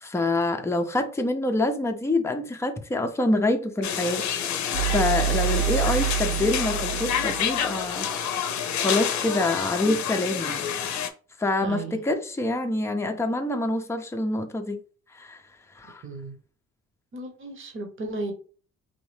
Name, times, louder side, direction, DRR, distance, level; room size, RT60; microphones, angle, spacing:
voice 1, 0.0-4.3 4.9-8.1 8.8-10.6 11.4-14.8 15.1-15.4 15.7-16.0, left 2 dB, 10° left, 0.6 m, -26 dB
sound 1, 3.8-11.1, left 8 dB, 65° left, 0.6 m, -28 dB
sound 2, 4.7-8.5, right 10 dB, 75° right, 0.6 m, -28 dB
voice 2, 16.0-16.4 17.1-18.3, right 2 dB, 40° right, 1.0 m, -34 dB
4.1 x 2.6 x 3.3 m
cardioid pair, 90°, 30 cm